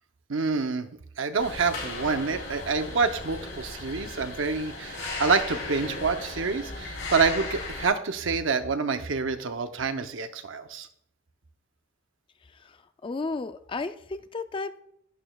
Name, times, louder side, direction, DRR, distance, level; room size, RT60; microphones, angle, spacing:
voice 1, 0.3-0.9 1.2-10.9, right 4 dB, 80° right, 8 dB, 0.7 m, -27 dB
sound 1, 1.4-7.9, left 3 dB, 80° left, 3.7 m, -36 dB
voice 2, 13.0-14.8, left 3 dB, 25° left, 11 dB, 0.4 m, -33 dB
11.5 x 9.0 x 2.3 m, 0.69 s
head